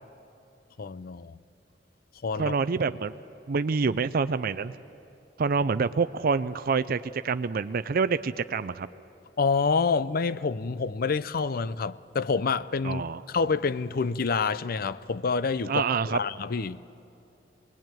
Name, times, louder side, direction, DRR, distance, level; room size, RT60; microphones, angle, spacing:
voice 1, 0.8-1.4 2.2-2.6 9.4-13.0 13.3-16.9, left 4 dB, 55° left, 0.5 m, -27 dB
voice 2, 2.4-3.2 3.5-4.8 5.4-8.9 12.8-13.2 15.7-16.2, right 5 dB, 55° right, 0.5 m, -27 dB
26.0 x 20.0 x 9.0 m
head